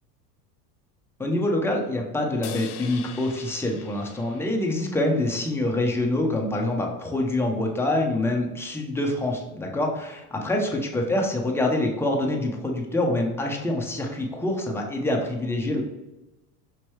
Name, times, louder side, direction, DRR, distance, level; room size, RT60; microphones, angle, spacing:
voice 1, 1.2-15.8, left 1 dB, 5° left, 0 dB, 0.7 m, -26 dB
sound 1, 2.4-5.9, left 9 dB, 90° left, 0.6 m, -43 dB
5.5 x 3.0 x 3.1 m, 1.0 s
supercardioid pair, 100°, 45 cm